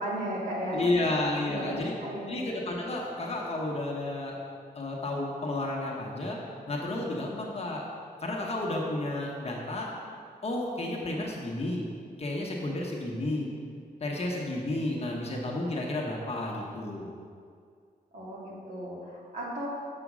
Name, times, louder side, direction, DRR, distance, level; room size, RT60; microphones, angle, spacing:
voice 1, 0.0-1.0 1.5-1.7 2.0-2.4 18.1-19.7, right 1 dB, 50° right, -5 dB, 2.0 m, -35 dB
voice 2, 0.7-1.9 2.3-4.4 4.7-6.4 6.7-7.8 8.2-9.9 10.4-11.9 12.2-13.5 14.0-17.1, left 2 dB, 40° left, -2 dB, 1.0 m, -31 dB
7.3 x 4.4 x 6.1 m, 2.2 s
wide cardioid pair, 115°, 16 cm